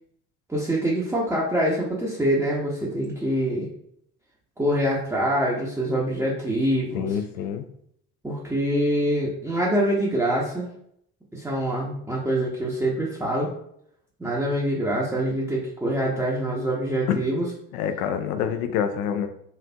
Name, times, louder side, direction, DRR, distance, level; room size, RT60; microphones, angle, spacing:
voice 1, 0.5-3.7 4.6-7.2 8.2-10.7 11.3-13.5 14.2-17.5, right 1 dB, 5° right, -6 dB, 0.7 m, -25 dB
voice 2, 6.9-7.6 17.1-17.2 17.7-19.3, left 8 dB, 65° left, 9 dB, 0.6 m, -26 dB
4.3 x 2.4 x 2.2 m, 0.70 s
figure-of-eight pair, 60°, 48 cm